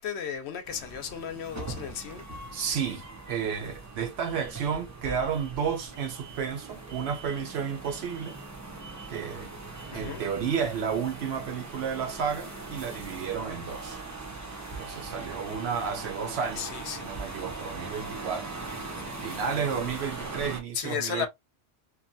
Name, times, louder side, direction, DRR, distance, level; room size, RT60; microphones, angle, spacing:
voice 1, 0.0-2.3 9.9-10.2 16.6-17.1 20.7-21.3, left 8 dB, 65° left, 0.8 m, -34 dB
sound 1, 0.7-20.6, right 3 dB, 25° right, 0.4 m, -40 dB
voice 2, 2.5-8.4 9.1-9.5 9.9-14.0 14.8-16.7 17.0-18.5 19.2-21.3, right 7 dB, 65° right, 0.8 m, -32 dB
2.6 x 2.2 x 2.6 m
omnidirectional pair, 1.2 m